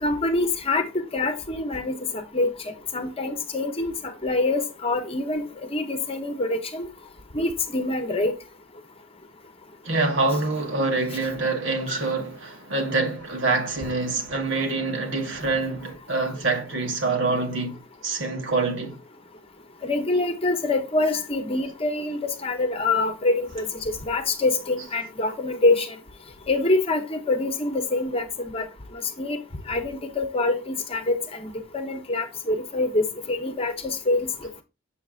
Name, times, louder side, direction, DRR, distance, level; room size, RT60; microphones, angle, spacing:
voice 1, 0.0-2.5 2.9-3.9 4.2-5.4 5.7-6.9 7.3-8.3 11.9-12.0 19.8-25.9 26.5-28.7 29.2-29.4 29.7-34.3, left 2 dB, 30° left, 0.9 m, -25 dB
voice 2, 9.8-19.0, right 3 dB, 65° right, 1.8 m, -26 dB
7.1 x 6.8 x 2.4 m
head